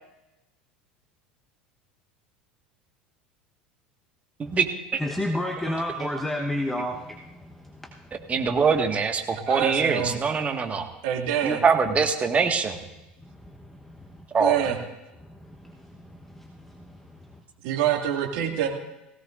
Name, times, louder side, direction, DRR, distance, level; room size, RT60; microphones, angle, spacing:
voice 1, 5.0-8.5 13.2-14.3 15.2-17.4, left 1 dB, 5° left, 2 dB, 1.1 m, -33 dB
voice 2, 8.3-10.9 11.4-12.8 14.3-14.6, right 5 dB, 25° right, 4 dB, 1.7 m, -23 dB
voice 3, 9.3-10.1 11.0-11.6 14.4-14.8 17.6-18.7, right 10 dB, 65° right, 1 dB, 2.2 m, -26 dB
18.0 x 16.5 x 2.6 m, 1.0 s
hypercardioid pair, 75°, 5 cm